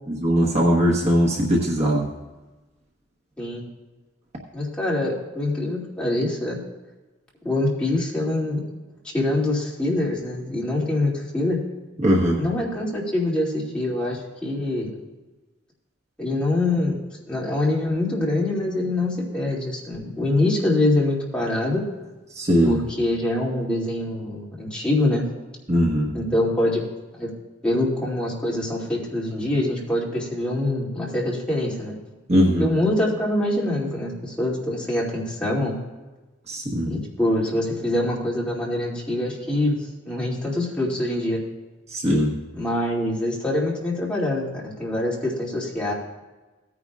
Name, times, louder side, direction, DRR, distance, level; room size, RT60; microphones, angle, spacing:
voice 1, 0.1-2.1 12.0-12.4 22.4-22.8 25.7-26.1 32.3-32.7 36.5-36.9 41.9-42.3, equal, 35° right, -2 dB, 1.2 m, -20 dB
voice 2, 4.5-6.6 7.4-8.6 9.1-11.6 12.3-14.9 16.2-16.9 17.3-21.8 22.7-25.3 26.1-26.8 27.2-27.3 27.6-31.9 32.6-35.8 36.9-41.4 42.5-45.9, left 1 dB, 5° left, -6 dB, 2.5 m, -24 dB
17.0 x 9.7 x 2.4 m, 1.2 s
head